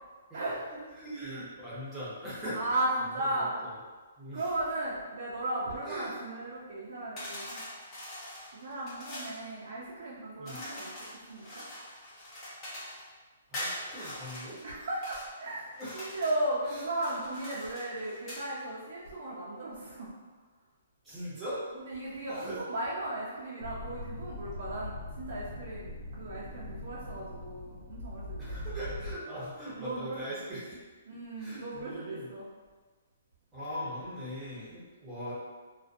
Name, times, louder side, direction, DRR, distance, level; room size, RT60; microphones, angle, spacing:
voice 1, 0.3-0.8 2.5-3.6 4.3-7.6 8.5-11.6 14.6-20.1 21.7-28.7 29.7-30.4 31.1-32.5, right 1 dB, 65° right, -6 dB, 0.5 m, -36 dB
voice 2, 1.0-2.7 3.2-3.5 4.2-4.4 5.8-6.1 10.4-10.6 13.5-14.6 15.8-16.1 16.7-16.8 21.0-21.6 22.3-22.6 28.4-30.8 31.4-32.3 33.5-35.3, equal, 10° right, -10 dB, 0.8 m, -40 dB
sound 1, 7.2-9.4 10.4-13.0 13.5-15.3 15.7-16.4 16.9-18.5, left 1 dB, 25° left, 0.7 m, -42 dB
sound 2, 23.6-29.1, left 1 dB, 65° left, 1.0 m, -41 dB
2.5 x 2.1 x 2.5 m, 1.4 s
hypercardioid pair, 160°, 0 cm